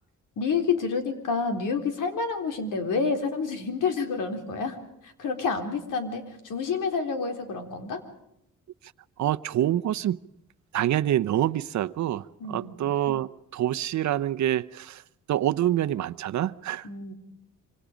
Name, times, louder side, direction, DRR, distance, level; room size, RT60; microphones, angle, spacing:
voice 1, 0.4-4.8 5.0-8.0 12.4-12.7 16.8-17.1, left 5 dB, 80° left, 6 dB, 3.9 m, -28 dB
voice 2, 9.2-10.2 10.7-15.0 15.3-16.9, right 12 dB, 65° right, 13 dB, 0.8 m, -26 dB
26.0 x 25.5 x 5.1 m, 0.80 s
cardioid pair, 120°, 31 cm